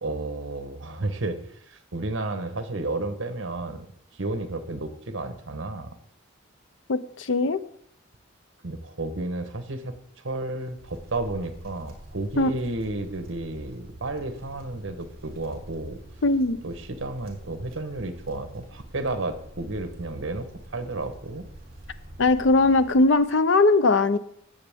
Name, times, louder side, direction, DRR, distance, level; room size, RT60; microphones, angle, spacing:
voice 1, 0.0-3.9 4.1-5.9 8.6-16.0 16.6-20.5 20.7-21.5, right 2 dB, 70° right, 9 dB, 1.1 m, -32 dB
voice 2, 6.9-7.6 12.4-12.5 16.2-16.6 22.2-24.2, left 3 dB, 65° left, 13 dB, 0.6 m, -20 dB
Wind, 10.6-23.4, right 1 dB, 50° right, 3.0 m, -46 dB
17.5 x 7.1 x 3.5 m, 0.69 s
head